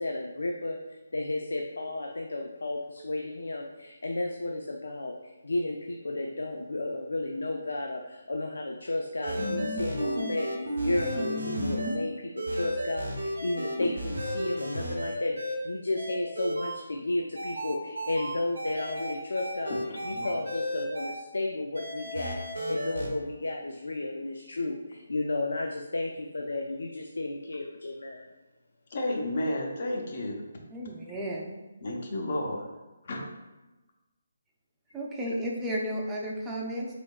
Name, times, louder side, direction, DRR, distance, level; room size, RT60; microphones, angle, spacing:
voice 1, 0.0-22.4 22.7-28.3, left 2 dB, 85° left, 1 dB, 0.4 m, -33 dB
sound 1, 9.2-12.0 12.4-15.6 16.0-16.8 17.4-21.1 21.7-23.1, equal, 85° right, 0.8 m, -33 dB
voice 2, 19.9-20.3 28.9-30.4 31.8-32.7 33.0-33.3, left 1 dB, 50° left, 0 dB, 0.7 m, -32 dB
voice 3, 30.7-31.5 34.9-36.9, equal, 10° right, -3 dB, 0.5 m, -33 dB
3.7 x 3.4 x 2.3 m, 1.1 s
hypercardioid pair, 165°, 0 cm